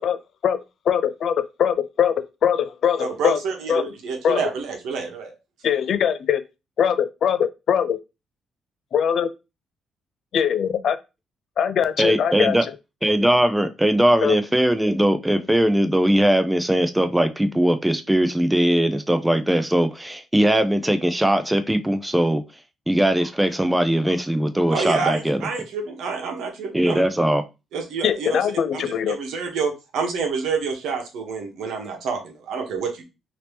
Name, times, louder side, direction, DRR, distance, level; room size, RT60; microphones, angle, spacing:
voice 1, 0.9-1.3 1.6-2.1 2.4-3.4 3.7-3.8 4.2-4.4 5.6-6.4 6.8-8.0 8.9-9.3 10.3-11.0 11.6-12.6 14.2-14.3 28.0-29.2, left 8 dB, 65° left, 0.4 m, -21 dB
voice 2, 3.0-5.3 24.7-27.0 27.7-28.3 28.7-33.0, right 5 dB, 80° right, 1.1 m, -28 dB
voice 3, 12.0-12.6 13.0-22.4 22.9-25.4 26.7-27.4, right 1 dB, 10° right, 0.5 m, -20 dB
2.9 x 2.9 x 3.3 m
cardioid pair, 90°, 0 cm